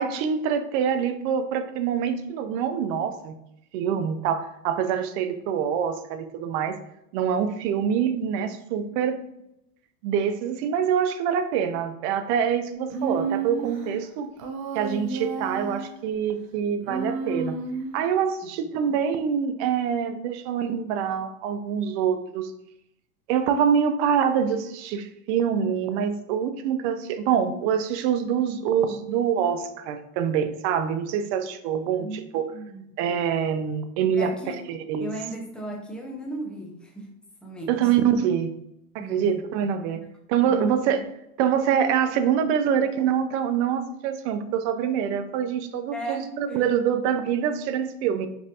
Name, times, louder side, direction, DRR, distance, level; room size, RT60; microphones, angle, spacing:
voice 1, 0.0-3.4 3.7-6.8 7.1-9.2 10.0-14.3 14.7-17.6 17.9-22.5 23.3-32.4 33.0-34.3 34.7-35.1 37.7-38.5 38.9-40.0 40.3-41.1 41.4-48.3, right 8 dB, 55° right, 10 dB, 0.5 m, -25 dB
Human voice, 12.9-13.9 14.4-16.0 16.8-18.1, right 4 dB, 70° right, 0.9 m, -31 dB
voice 2, 32.0-32.8 34.2-34.6 35.0-37.1 37.4-37.9 39.0-39.4 39.9-40.1 40.4-41.0 45.9-46.6, right 2 dB, ahead, -1 dB, 0.5 m, -36 dB
5.4 x 2.5 x 2.7 m, 0.80 s
supercardioid pair, 140°, 42 cm